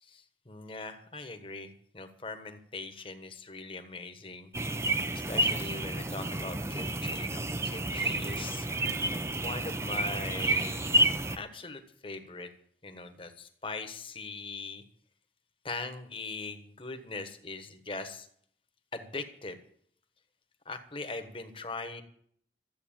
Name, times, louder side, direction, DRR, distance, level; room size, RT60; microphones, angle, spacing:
voice 1, 0.0-4.5 5.3-8.7 9.3-12.5 12.8-14.8 15.6-18.3 18.9-19.6 20.6-22.0, left 3 dB, 30° left, 8 dB, 1.3 m, -41 dB
sound 1, 4.5-11.4, right 1 dB, 15° right, 0.6 m, -30 dB
13.5 x 8.2 x 8.8 m, 0.65 s
head